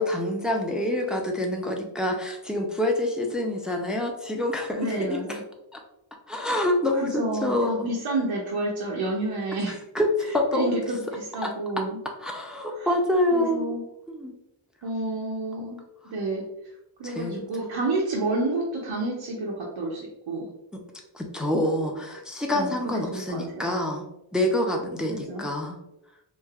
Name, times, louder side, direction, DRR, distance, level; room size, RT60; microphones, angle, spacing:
voice 1, 0.0-5.4 5.7-5.8 6.3-7.9 9.9-10.8 11.4-11.5 12.2-13.7 14.1-14.3 17.0-17.5 21.1-24.1 24.3-25.8, left 1 dB, ahead, 1 dB, 0.4 m, -26 dB
voice 2, 4.8-5.4 7.0-9.8 10.5-12.0 12.8-12.9 13.3-13.8 14.8-15.8 16.1-16.4 17.0-20.5 22.5-22.8 23.1-23.7 25.1-25.5, right 2 dB, 75° right, -3 dB, 0.6 m, -29 dB
3.2 x 2.5 x 2.3 m, 0.88 s
wide cardioid pair, 55°, 48 cm